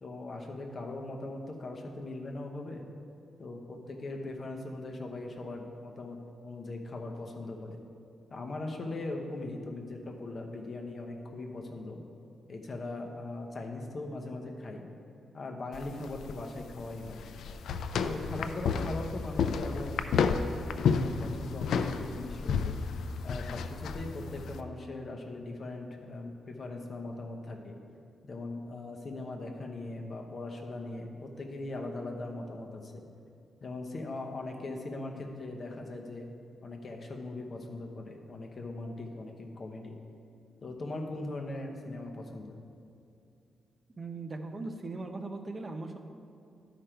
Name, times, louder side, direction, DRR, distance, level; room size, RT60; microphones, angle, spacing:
voice 1, 0.0-2.8 3.4-6.2 6.4-7.8 8.3-12.0 12.5-14.9 15.3-17.2 18.0-20.0 20.7-22.8 23.2-27.7 28.2-33.0 33.6-36.3 36.6-40.0 40.6-42.6, left 2 dB, 40° left, 2 dB, 0.9 m, -40 dB
sound 1, 15.7-24.6, left 5 dB, 80° left, 0.4 m, -31 dB
voice 2, 44.0-46.0, right 3 dB, 25° right, 5 dB, 0.6 m, -39 dB
11.5 x 5.0 x 4.5 m, 2.5 s
wide cardioid pair, 145°, 0 cm